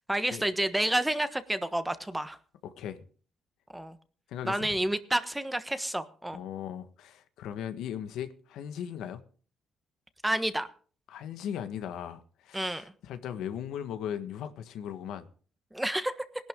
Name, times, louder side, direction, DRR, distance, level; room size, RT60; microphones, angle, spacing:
voice 1, 0.1-2.4 3.7-4.0 4.4-6.4 10.2-10.7 12.5-12.9 15.7-16.1, right 1 dB, 5° right, 1.2 m, -29 dB
voice 2, 4.3-4.7 6.3-9.2 11.1-15.3, left 9 dB, 85° left, 1.5 m, -38 dB
19.0 x 11.5 x 3.8 m
cardioid pair, 105°, 0 cm